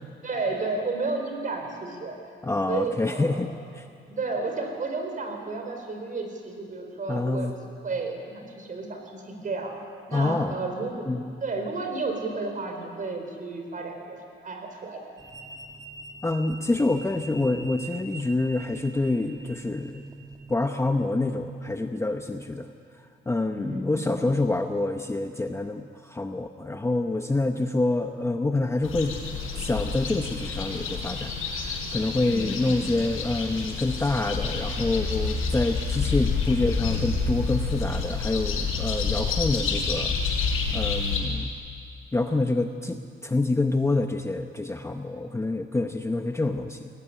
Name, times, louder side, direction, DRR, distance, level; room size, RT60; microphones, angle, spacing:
voice 1, 0.2-2.2 2.7-3.4 4.1-7.5 7.8-9.8 10.1-11.1 11.4-15.0 23.5-24.0 32.3-32.7, right 3 dB, 40° right, 4 dB, 4.4 m, -32 dB
voice 2, 2.4-3.5 3.8-3.9 7.1-7.5 10.1-10.6 11.1-11.3 16.2-20.0 20.5-22.7 23.3-29.2 29.5-40.2 40.7-41.5 42.1-46.9, left 2 dB, 15° left, 6 dB, 0.8 m, -27 dB
sound 1, 15.2-20.7, right 3 dB, 15° right, 2.0 m, -43 dB
sound 2, 28.8-41.2, left 4 dB, 90° left, 5.4 m, -28 dB
23.0 x 17.5 x 9.9 m, 2.3 s
cardioid pair, 135°, 21 cm